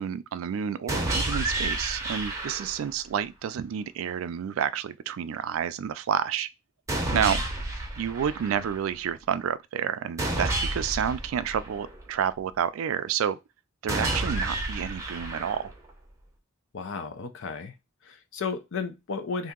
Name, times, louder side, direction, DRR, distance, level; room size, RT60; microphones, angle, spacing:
voice 1, 0.0-6.5 7.1-7.4 8.0-13.4 13.8-15.7, right 8 dB, 75° right, 0.3 m, -29 dB
sound 1, 0.9-2.9 6.9-8.9 10.2-12.2 13.9-15.9, right 2 dB, 15° right, 0.7 m, -30 dB
voice 2, 7.1-7.4 16.7-17.7 18.0-19.5, left 4 dB, 65° left, 0.5 m, -34 dB
2.8 x 2.6 x 3.6 m
head